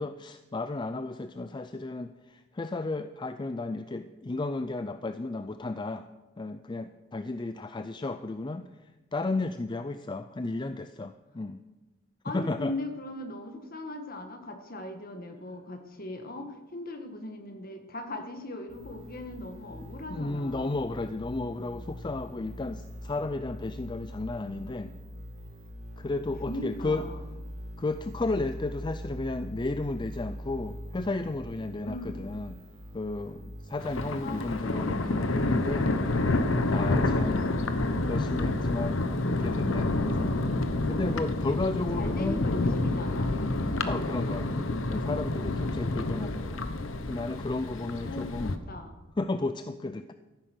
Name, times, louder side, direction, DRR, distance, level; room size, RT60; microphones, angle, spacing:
voice 1, 0.0-6.1 6.4-8.7 9.1-11.6 12.3-12.7 20.1-24.9 26.0-27.1 27.8-32.6 32.9-35.9 36.7-37.4 38.1-40.3 40.9-42.4 43.8-46.6 47.1-48.6 49.2-50.1, left 2 dB, 25° left, 10 dB, 0.4 m, -33 dB
voice 2, 12.2-20.8 26.4-27.2 31.8-32.2 34.2-34.7 37.3-37.7 41.9-43.3 48.0-49.0, left 1 dB, 50° left, 6 dB, 1.7 m, -39 dB
sound 1, 18.7-34.6, equal, 85° right, 4.1 m, -42 dB
Thunder, 33.8-48.6, left 2 dB, 85° left, 1.0 m, -28 dB
14.0 x 10.0 x 6.1 m, 1.1 s
head